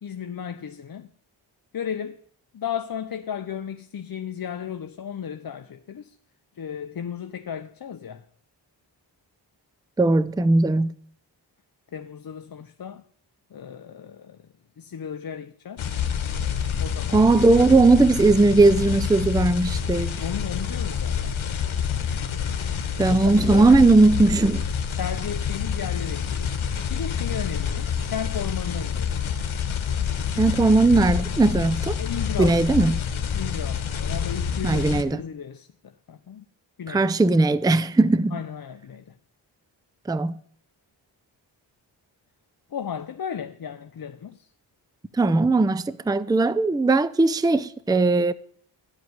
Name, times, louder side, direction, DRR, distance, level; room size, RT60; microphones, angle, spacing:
voice 1, 0.0-1.1 1.7-2.2 2.5-6.2 6.5-8.2 11.9-13.0 13.5-14.4 14.8-16.0 16.8-17.3 20.2-21.4 23.1-23.9 25.0-26.6 26.9-29.1 32.0-32.6 33.3-36.4 36.8-37.1 38.3-39.1 42.7-44.5, left 8 dB, 50° left, 0.7 m, -34 dB
voice 2, 10.0-10.9 17.1-20.2 23.0-24.6 30.4-32.0 32.4-33.0 34.6-35.2 36.9-38.4 40.1-40.3 45.2-48.3, right 3 dB, 10° right, 0.5 m, -18 dB
sound 1, 15.8-35.0, left 7 dB, 85° left, 1.2 m, -27 dB
15.0 x 5.0 x 9.4 m
cardioid pair, 60°, 47 cm